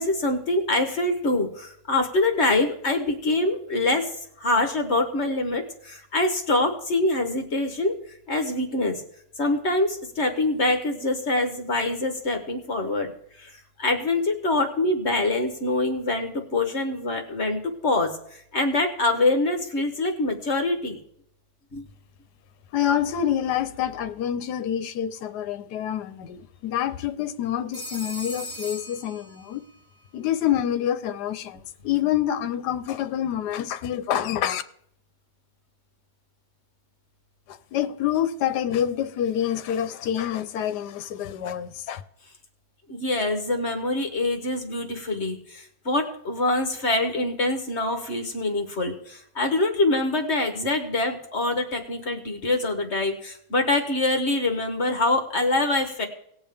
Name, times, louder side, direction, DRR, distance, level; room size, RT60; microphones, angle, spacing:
voice 1, 0.0-4.1 4.4-7.9 8.3-9.0 9.4-21.0 21.7-21.9 42.9-56.0, left 2 dB, 45° left, 1.2 m, -25 dB
voice 2, 22.7-29.6 30.1-34.6 37.5-42.0, left 10 dB, 75° left, 1.2 m, -27 dB
Telephone, 27.7-29.8, equal, 15° right, 2.6 m, -38 dB
18.5 x 7.1 x 3.5 m
omnidirectional pair, 1.8 m